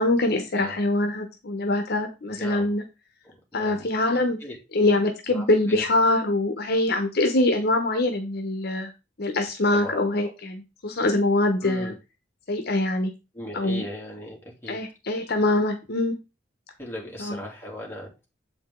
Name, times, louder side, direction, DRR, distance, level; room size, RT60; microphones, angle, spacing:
voice 1, 0.0-2.8 3.5-4.4 4.7-8.9 9.2-11.9 12.5-13.1 13.5-13.8 14.7-16.1 17.2-17.4, left 2 dB, 60° left, 6 dB, 0.9 m, -24 dB
voice 2, 0.5-0.9 2.3-2.8 3.2-3.9 4.4-4.6 5.3-5.8 9.7-10.3 11.6-11.9 13.3-14.8 16.8-18.1, left 1 dB, 15° left, -3 dB, 3.0 m, -38 dB
7.6 x 5.1 x 3.8 m, 0.27 s
head